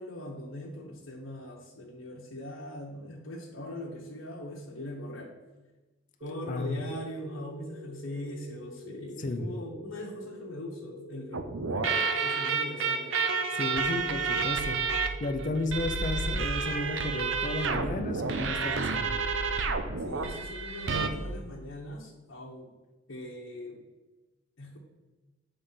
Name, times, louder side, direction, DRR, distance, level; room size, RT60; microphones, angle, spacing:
voice 1, 0.0-5.3 6.2-13.2 20.0-22.8 23.1-23.8 24.6-24.8, left 1 dB, 75° left, -4 dB, 1.0 m, -41 dB
horror ambience high, 6.2-19.3, left 2 dB, 50° right, 1.4 m, -47 dB
voice 2, 6.5-6.8 9.2-9.5 13.5-19.1, left 2 dB, 40° left, 5 dB, 0.5 m, -33 dB
sound 1, 11.3-21.1, right 4 dB, 70° right, 0.6 m, -30 dB
7.9 x 3.3 x 5.6 m, 1.2 s
head